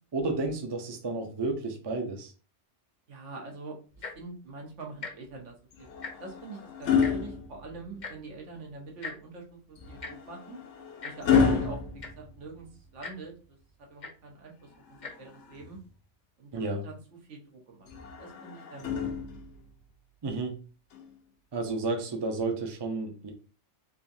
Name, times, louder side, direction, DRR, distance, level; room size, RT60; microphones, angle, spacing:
voice 1, 0.1-2.3 11.3-11.6 16.5-16.8 20.2-20.6 21.5-23.3, right 3 dB, 30° right, 3 dB, 0.5 m, -31 dB
voice 2, 3.1-10.6 11.0-11.8 12.2-15.8 16.4-17.0 17.3-17.9 18.2-19.1, right 3 dB, 85° right, 1 dB, 1.3 m, -45 dB
Tick-tock, 3.9-4.3 4.9-5.1 5.4-5.6 5.9-6.4 7.0-7.1 8.0-8.1 9.0-9.1 10.0-10.1 11.0-11.1 11.7-11.8 12.0-12.3 13.0-13.1 14.0-14.1 14.9-15.1 15.8-15.9, left 4 dB, 45° left, 0.7 m, -39 dB
sound 1, 5.7-8.2 9.8-13.0 14.7-15.9 17.9-19.7 20.9-21.1, left 6 dB, 75° left, 1.0 m, -30 dB
3.6 x 2.6 x 2.6 m, 0.36 s
omnidirectional pair, 1.2 m